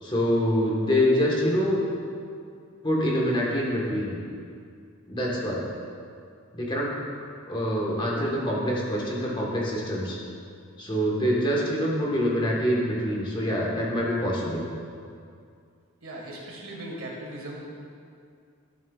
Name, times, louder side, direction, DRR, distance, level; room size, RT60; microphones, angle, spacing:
voice 1, 0.0-1.8 2.8-4.2 5.1-5.6 6.5-6.9 7.5-10.2 10.8-14.6, equal, 20° left, -4 dB, 1.3 m, -25 dB
voice 2, 16.0-17.7, right 1 dB, 70° right, -2 dB, 1.6 m, -38 dB
12.5 x 7.3 x 2.4 m, 2.4 s
head